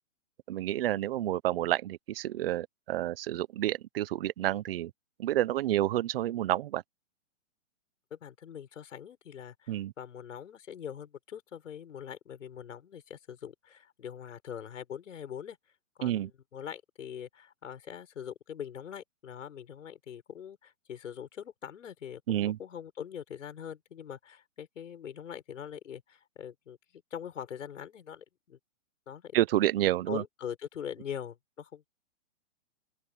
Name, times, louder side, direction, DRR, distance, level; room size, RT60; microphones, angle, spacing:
voice 1, 0.5-4.9 5.2-6.8 9.7-9.9 16.0-16.3 22.3-22.6 29.3-30.2, right 13 dB, 45° right, 1.0 m, -29 dB
voice 2, 8.1-15.6 16.0-28.6 29.1-29.4 30.1-31.9, left 8 dB, 70° left, 6.6 m, -43 dB
open air
hypercardioid pair, 150°, 38 cm